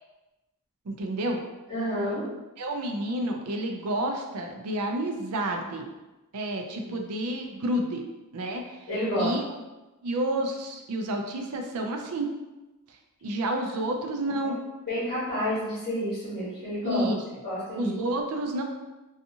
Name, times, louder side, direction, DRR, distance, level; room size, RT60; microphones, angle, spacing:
voice 1, 0.9-1.4 2.6-5.9 6.3-8.0 8.3-8.8 9.2-9.4 10.0-12.3 13.2-14.6 16.8-17.2 17.8-18.6, right 1 dB, 85° right, 3 dB, 0.4 m, -30 dB
voice 2, 1.7-2.2 6.7-6.9 8.9-9.3 13.9-14.5 14.9-17.1 17.4-18.0, equal, 45° left, -13 dB, 1.1 m, -30 dB
2.6 x 2.3 x 2.7 m, 1.1 s
head